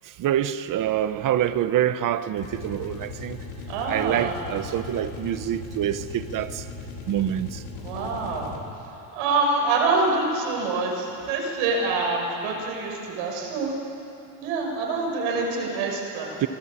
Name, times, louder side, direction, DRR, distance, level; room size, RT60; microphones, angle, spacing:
voice 1, 0.0-3.4 3.9-6.7 7.1-7.6 16.4-16.5, right 11 dB, 40° right, 0.9 m, -26 dB
sound 1, 2.3-8.9, left 3 dB, 70° left, 4.1 m, -38 dB
voice 2, 3.7-4.3 7.8-8.5 9.1-13.7 14.4-16.3, right 3 dB, 80° right, 6.6 m, -26 dB
27.0 x 18.5 x 8.9 m
cardioid pair, 150°, 48 cm